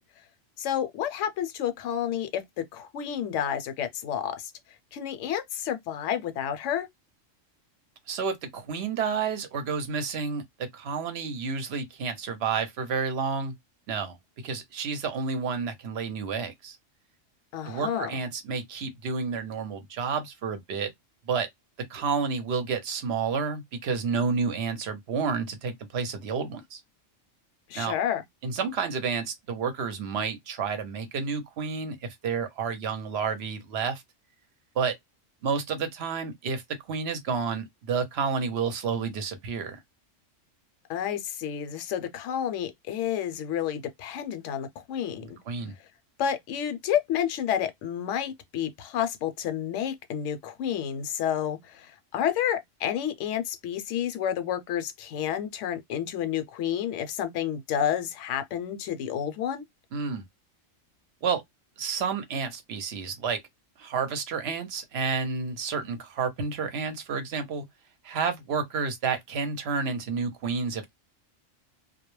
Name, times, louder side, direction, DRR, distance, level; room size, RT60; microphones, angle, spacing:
voice 1, 0.6-4.5 4.9-6.9 17.5-18.1 27.7-28.2 40.9-45.4 46.2-59.6, left 9 dB, 70° left, 0.9 m, -30 dB
voice 2, 8.1-10.4 10.7-13.6 13.9-14.2 14.4-16.8 17.7-20.9 21.3-21.5 21.9-26.8 27.7-28.0 28.4-34.0 34.8-34.9 35.4-36.6 36.9-39.8 45.5-45.7 59.9-60.2 61.2-61.4 61.8-63.4 63.8-67.6 68.0-70.9, right 5 dB, 60° right, 0.8 m, -30 dB
2.2 x 2.0 x 3.0 m
omnidirectional pair, 1.3 m